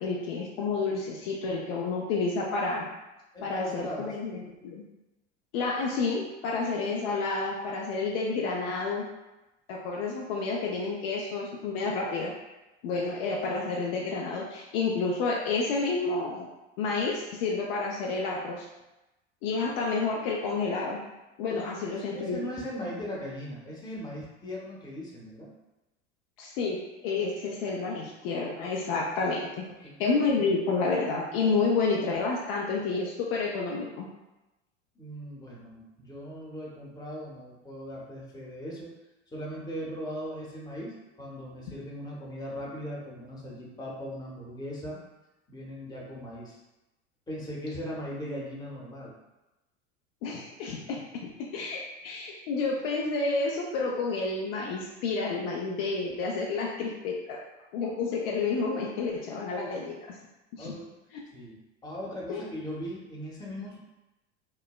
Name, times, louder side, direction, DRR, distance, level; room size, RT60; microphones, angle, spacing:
voice 1, 0.0-2.9 3.4-4.9 5.5-9.1 9.7-12.3 12.8-16.5 16.8-18.7 19.4-21.0 21.4-22.5 26.4-29.7 30.0-34.1 50.2-57.4 57.7-60.2 60.5-60.7 62.3-62.4, left 4 dB, 55° left, -2 dB, 0.5 m, -30 dB
voice 2, 3.3-4.2 21.5-25.5 29.7-29.9 35.0-39.0 39.3-45.0 45.5-46.6 47.3-49.1 60.6-61.0 61.3-63.8, equal, 10° left, -4 dB, 0.7 m, -39 dB
3.0 x 2.0 x 2.2 m, 0.99 s
hypercardioid pair, 80°, 36 cm